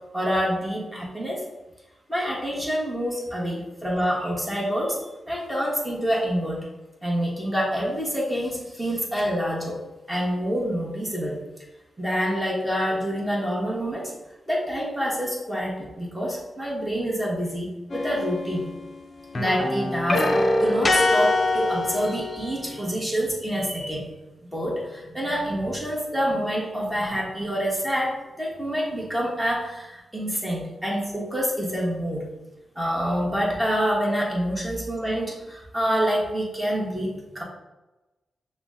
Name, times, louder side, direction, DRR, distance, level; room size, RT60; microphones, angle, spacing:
voice 1, 0.1-1.4 2.1-5.0 5.3-6.7 7.0-9.8 10.1-11.4 12.0-14.1 14.5-18.7 19.3-20.2 20.6-24.1 24.5-32.3 32.8-37.4, equal, 10° right, -3 dB, 1.3 m, -27 dB
sound 1, 17.9-19.0 19.3-22.8, left 2 dB, 40° left, 0.5 m, -24 dB
5.9 x 2.2 x 3.6 m, 1.1 s
cardioid pair, 95°, 0 cm